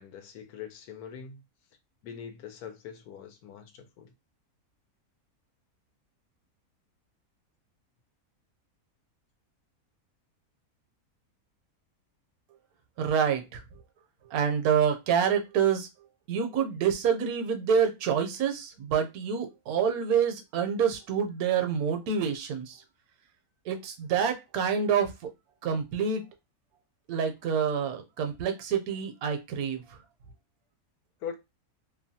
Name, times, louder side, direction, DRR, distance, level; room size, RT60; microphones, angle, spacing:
voice 1, 0.0-1.4 2.0-4.1 31.2-31.4, left 8 dB, 80° left, 1.1 m, -42 dB
voice 2, 13.0-13.6 14.3-15.9 16.3-22.8 23.7-25.3 25.6-26.2 27.1-30.0, right 7 dB, 75° right, 1.0 m, -27 dB
2.8 x 2.2 x 2.6 m
omnidirectional pair, 1.6 m